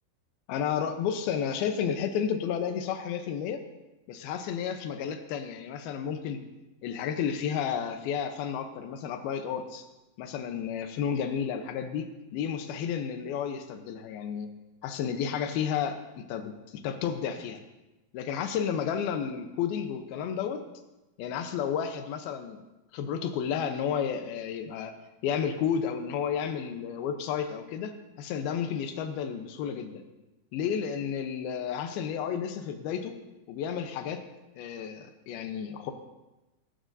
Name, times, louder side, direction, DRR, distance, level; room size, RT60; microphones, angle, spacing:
voice 1, 0.5-3.6 4.1-6.4 6.8-9.8 10.2-14.5 14.8-17.6 18.1-20.6 21.2-22.6 22.9-24.9 25.2-30.0 30.5-33.2 33.5-34.2 34.6-35.9, left 7 dB, 85° left, 7 dB, 2.8 m, -32 dB
23.0 x 12.5 x 2.7 m, 1.0 s
omnidirectional pair, 4.2 m